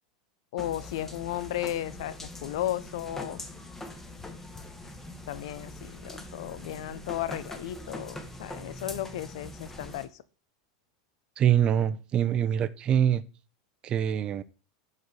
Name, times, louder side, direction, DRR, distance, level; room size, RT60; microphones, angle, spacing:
voice 1, 0.5-3.4 5.3-10.1, left 13 dB, 70° left, 0.5 m, -34 dB
sound 1, 0.6-10.1, left 1 dB, 10° left, 1.1 m, -42 dB
voice 2, 11.4-13.2 13.8-14.4, right 9 dB, 35° right, 0.5 m, -24 dB
5.2 x 5.1 x 4.0 m
hypercardioid pair, 100°, 3 cm